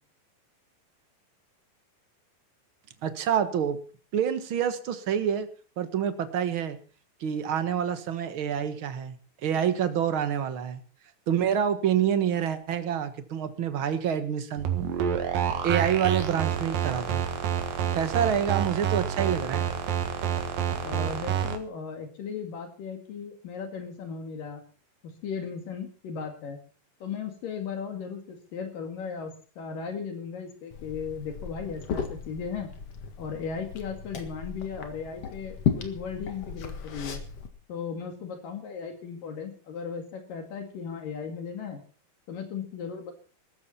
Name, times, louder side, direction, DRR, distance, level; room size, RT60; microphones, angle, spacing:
voice 1, 3.0-3.8 4.1-5.5 5.8-6.8 7.2-9.1 9.4-10.8 11.3-14.7 15.6-17.2 17.9-19.7, right 8 dB, 50° right, 10 dB, 1.6 m, -27 dB
sound 1, 14.6-21.6, right 8 dB, 75° right, 3.5 m, -28 dB
voice 2, 20.8-24.6 25.2-26.6 27.0-32.7 33.2-37.2 37.7-41.8 42.3-43.1, left 6 dB, 70° left, 4 dB, 3.7 m, -36 dB
Liquid, 30.7-37.5, left 7 dB, 50° left, 2.4 m, -35 dB
19.0 x 14.0 x 4.3 m, 0.39 s
omnidirectional pair, 4.1 m